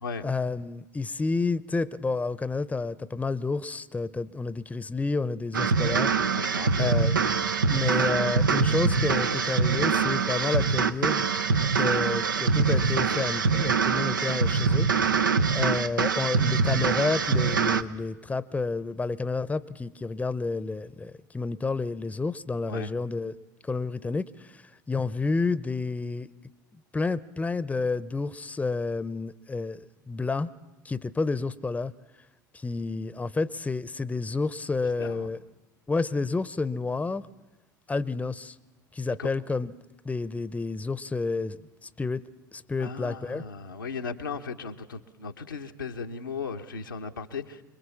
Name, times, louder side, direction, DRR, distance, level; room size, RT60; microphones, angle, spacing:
voice 1, 0.2-6.1 6.8-7.2 7.7-11.3 11.7-14.9 15.5-23.4 23.6-24.6 24.9-26.3 26.9-29.8 30.1-30.5 30.8-31.9 32.5-35.4 35.9-37.3 37.9-38.5 38.9-39.7 40.0-41.6 42.0-42.2 42.5-43.5, left 3 dB, 15° left, 17 dB, 0.8 m, -30 dB
sound 1, 5.5-17.8, right 5 dB, 85° right, 0.7 m, -24 dB
voice 2, 6.3-7.2 22.7-22.9 35.0-35.3 39.2-39.3 42.8-47.6, left 5 dB, 90° left, 3 dB, 1.2 m, -36 dB
26.5 x 22.0 x 7.1 m, 1.1 s
hypercardioid pair, 75°, 10 cm